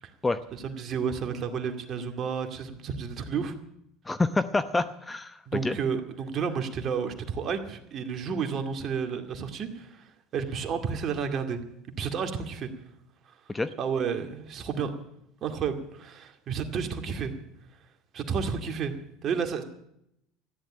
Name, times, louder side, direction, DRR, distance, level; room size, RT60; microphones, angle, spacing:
voice 1, 0.5-3.5 5.5-11.6 12.0-12.7 13.3-13.4 13.8-14.9 15.4-17.3 18.1-18.9 19.2-19.6, right 6 dB, 45° right, 7 dB, 2.3 m, -31 dB
voice 2, 4.1-5.4 5.6-5.8 13.5-13.7, left 3 dB, 15° left, 13 dB, 0.8 m, -27 dB
14.5 x 11.0 x 8.8 m, 0.78 s
hypercardioid pair, 80°, 0 cm